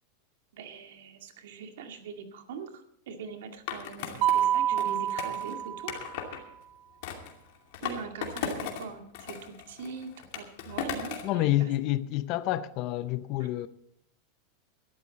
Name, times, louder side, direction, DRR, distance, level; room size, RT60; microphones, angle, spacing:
voice 1, 0.5-5.9 6.3-6.4 7.8-11.7 13.4-13.5, right 5 dB, 75° right, 2.2 m, -42 dB
Skateboard, 3.7-6.4 7.0-8.9 9.1-11.3, left 8 dB, 55° left, 2.5 m, -37 dB
Mallet percussion, 4.2-6.3, right 11 dB, 35° right, 0.7 m, -28 dB
voice 2, 11.2-13.7, left 15 dB, 40° left, 0.6 m, -28 dB
17.5 x 12.5 x 4.1 m
supercardioid pair, 165°, 0 cm